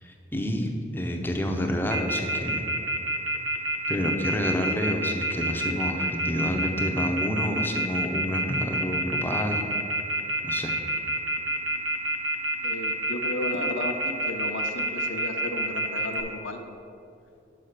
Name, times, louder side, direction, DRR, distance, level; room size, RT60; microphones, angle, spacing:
voice 1, 0.0-2.6 3.9-9.7 10.4-10.7, equal, 10° left, 3 dB, 0.5 m, -28 dB
Telephone, 1.9-16.2, right 1 dB, 90° right, 0.8 m, -27 dB
voice 2, 12.6-16.6, left 2 dB, 80° left, 5 dB, 0.7 m, -34 dB
5.7 x 5.6 x 6.5 m, 2.6 s
head